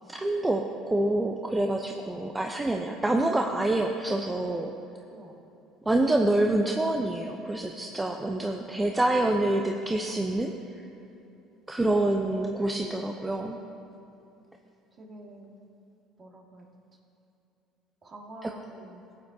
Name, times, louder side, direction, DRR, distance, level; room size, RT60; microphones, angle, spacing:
voice 1, 0.1-4.7 5.9-10.5 11.7-13.6 18.4-18.5, right 1 dB, 15° right, 3 dB, 0.6 m, -26 dB
voice 2, 12.2-12.5 15.0-15.5 16.2-16.6 18.0-19.0, right 1 dB, 35° right, 1 dB, 1.9 m, -47 dB
17.5 x 7.9 x 2.8 m, 2.9 s
hypercardioid pair, 70°, 0 cm